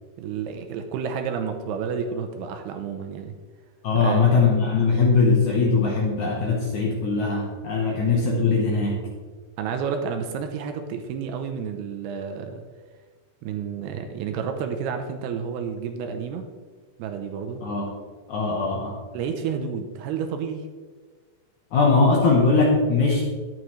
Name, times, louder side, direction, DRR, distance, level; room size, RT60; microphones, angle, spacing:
voice 1, 0.2-3.3 3.9-4.4 9.6-12.6 13.4-16.5 17.0-17.6 19.1-20.6, right 6 dB, 80° right, 5 dB, 2.6 m, -30 dB
voice 2, 3.8-9.0 17.6-17.9 18.3-19.0 21.7-23.2, left 4 dB, 70° left, -2 dB, 1.9 m, -21 dB
11.5 x 9.1 x 3.2 m, 1.4 s
omnidirectional pair, 4.9 m